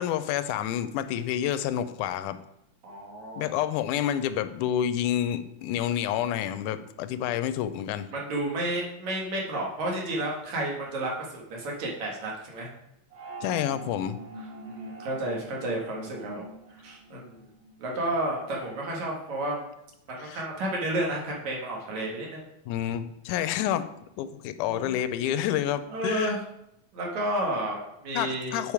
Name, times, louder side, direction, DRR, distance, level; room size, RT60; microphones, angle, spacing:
voice 1, 0.0-2.4 3.4-8.1 13.4-14.2 20.2-20.4 22.7-23.9 24.2-26.4 28.2-28.7, left 10 dB, 90° left, 12 dB, 2.1 m, -29 dB
voice 2, 2.8-3.5 8.1-12.7 14.4-17.5 17.8-19.7 20.1-22.4 24.7-24.9 25.9-26.4 26.9-28.6, right 1 dB, 65° right, -2 dB, 3.0 m, -31 dB
sound 1, 13.1-17.7, right 3 dB, 45° right, 2.1 m, -44 dB
8.7 x 5.1 x 4.7 m, 0.83 s
omnidirectional pair, 3.5 m